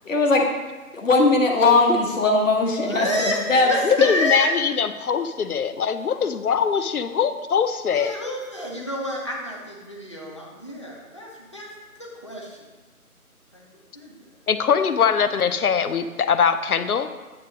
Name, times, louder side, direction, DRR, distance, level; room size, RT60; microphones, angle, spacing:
voice 1, 0.0-0.5 0.9-3.7, left 3 dB, 55° left, 1 dB, 1.3 m, -19 dB
voice 2, 2.8-4.5 7.9-11.7 12.0-12.7 13.5-13.6 13.9-14.3, left 1 dB, 20° left, -3 dB, 0.6 m, -29 dB
voice 3, 3.8-8.1 14.5-17.1, left 7 dB, 75° left, 10 dB, 0.6 m, -22 dB
8.6 x 2.9 x 6.2 m, 1.2 s
figure-of-eight pair, 155°, 45 cm